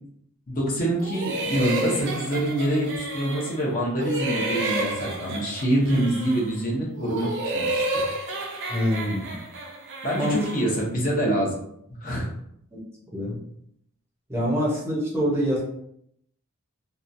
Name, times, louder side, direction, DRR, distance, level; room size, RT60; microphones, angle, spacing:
voice 1, 0.5-8.0 10.0-11.6 11.9-12.3, right 1 dB, 40° left, -4 dB, 0.8 m, -25 dB
sound 1, 1.0-3.6 4.0-6.5 6.9-10.7, right 2 dB, 55° right, 0.5 m, -31 dB
voice 2, 8.7-9.4 10.2-10.4 12.7-12.8 13.1-13.4 14.3-15.6, equal, 10° right, -5 dB, 0.7 m, -25 dB
2.9 x 2.3 x 2.6 m, 0.72 s
head